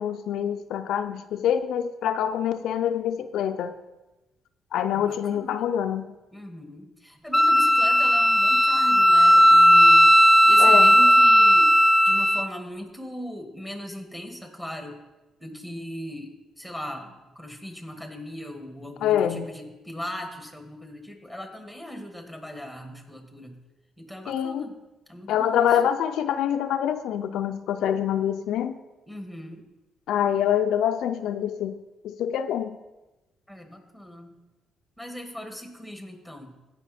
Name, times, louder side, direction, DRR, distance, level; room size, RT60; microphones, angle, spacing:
voice 1, 0.0-3.7 4.7-6.1 10.6-10.9 19.0-19.4 24.3-24.6 25.3-28.8 30.1-31.8 32.0-32.8, left 9 dB, 80° left, 8 dB, 0.4 m, -25 dB
voice 2, 4.9-5.7 6.3-10.1 10.4-11.8 12.0-15.0 15.4-16.3 16.6-23.6 24.0-24.8 25.1-25.8 29.1-29.7 33.5-34.4 35.0-36.6, equal, 5° right, 4 dB, 2.0 m, -39 dB
Wind instrument woodwind instrument, 7.3-12.5, equal, 10° left, 0.3 m, -16 dB
16.5 x 5.6 x 4.3 m, 1.1 s
cardioid pair, 90°, 0 cm